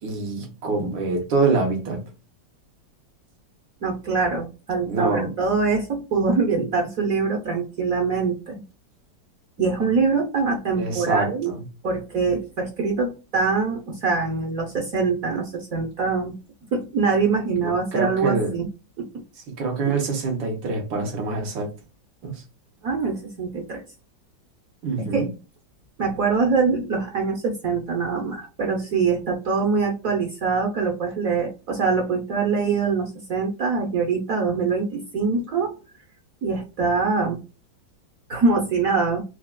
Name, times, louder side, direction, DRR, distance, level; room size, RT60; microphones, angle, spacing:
voice 1, 0.0-2.1 4.9-5.4 10.7-11.6 17.6-18.5 19.4-21.7 22.2-22.4 24.8-25.3, right 3 dB, 90° right, 2.0 m, -25 dB
voice 2, 3.8-8.6 9.6-11.5 11.8-16.3 16.7-18.7 19.0-19.2 22.8-23.8 25.1-25.3 26.0-35.8 36.4-37.4 38.3-39.2, right 4 dB, 55° right, 1.1 m, -24 dB
4.7 x 2.4 x 2.3 m
omnidirectional pair, 2.0 m